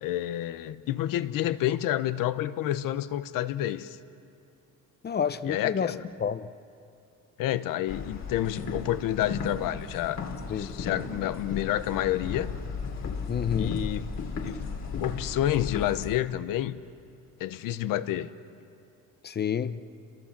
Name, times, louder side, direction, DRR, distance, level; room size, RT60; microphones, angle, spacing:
voice 1, 0.0-4.0 5.5-6.0 7.4-10.2 10.5-12.5 13.6-16.8 17.4-18.3, left 13 dB, 75° left, 13 dB, 1.0 m, -29 dB
voice 2, 5.0-6.5 10.5-10.8 13.3-13.8 19.2-19.8, left 7 dB, 30° left, 13 dB, 0.8 m, -29 dB
sound 1, 7.9-16.2, left 5 dB, 55° left, 2.9 m, -35 dB
29.0 x 22.5 x 7.4 m, 2.5 s
cardioid pair, 110°, 34 cm